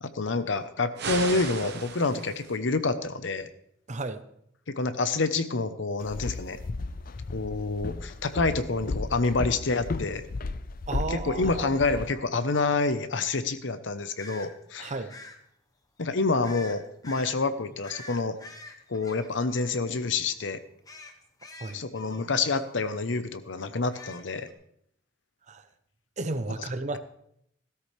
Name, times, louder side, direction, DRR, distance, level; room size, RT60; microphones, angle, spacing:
voice 1, 0.0-3.5 4.7-6.6 7.3-10.3 11.1-14.9 16.0-18.4 18.9-20.6 21.7-24.5, left 3 dB, 70° left, 0.9 m, -28 dB
sound 1, 1.0-2.6, right 5 dB, 60° right, 1.0 m, -35 dB
voice 2, 3.9-4.2 10.9-11.7 14.8-15.1 21.6-21.8 25.5-25.6 26.2-27.0, right 2 dB, 40° right, 0.8 m, -33 dB
Walk footsteps, 6.0-12.1, left 3 dB, 50° left, 0.5 m, -34 dB
sound 2, 14.2-14.5 15.1-15.4 16.4-16.8 17.0-17.3 17.8-20.0 20.3-20.5 20.8-22.7 23.1-23.2 23.6-24.5, left 2 dB, 20° left, 1.1 m, -46 dB
16.5 x 13.0 x 3.3 m
head